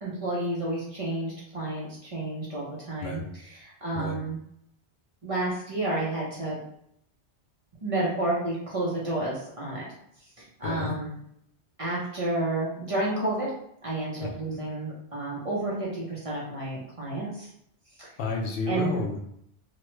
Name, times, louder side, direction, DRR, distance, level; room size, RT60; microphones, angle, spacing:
voice 1, 0.0-3.2 3.5-4.4 5.2-6.6 7.8-9.9 10.4-11.1 11.8-13.5 13.8-17.5 18.0-18.1 18.7-18.9, right 2 dB, 35° right, -6 dB, 0.7 m, -30 dB
voice 2, 10.6-11.0 14.2-14.3 14.5-14.6 18.2-19.2, left 3 dB, 70° left, 0 dB, 0.8 m, -31 dB
3.1 x 2.2 x 3.0 m, 0.73 s
omnidirectional pair, 1.1 m